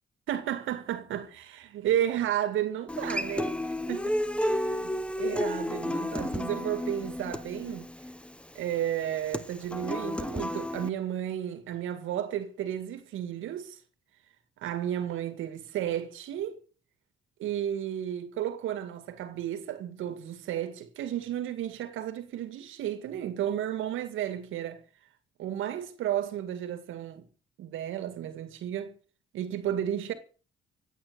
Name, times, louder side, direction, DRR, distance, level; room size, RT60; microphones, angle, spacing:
voice 1, 0.3-4.2 4.4-7.9 8.5-13.8 14.6-16.6 17.4-24.8 25.4-27.3 27.6-29.0 29.3-30.1, right 11 dB, 85° right, 2.1 m, -33 dB
Human voice / Acoustic guitar, 2.9-10.9, left 1 dB, 5° left, 1.2 m, -32 dB
15.0 x 9.3 x 8.1 m
cardioid pair, 90°, 20 cm